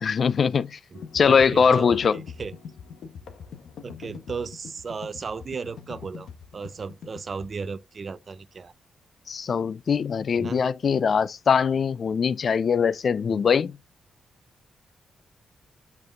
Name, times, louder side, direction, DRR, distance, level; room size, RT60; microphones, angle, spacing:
voice 1, 0.0-0.8 1.1-2.2 9.3-13.8, left 6 dB, 50° left, 0.4 m, -22 dB
sound 1, 0.9-7.5, left 6 dB, 80° left, 1.1 m, -42 dB
voice 2, 0.9-2.5 3.8-8.7 10.3-10.6 13.3-13.4, right 5 dB, 40° right, 0.5 m, -36 dB
5.8 x 5.4 x 3.8 m
cardioid pair, 100°, 0 cm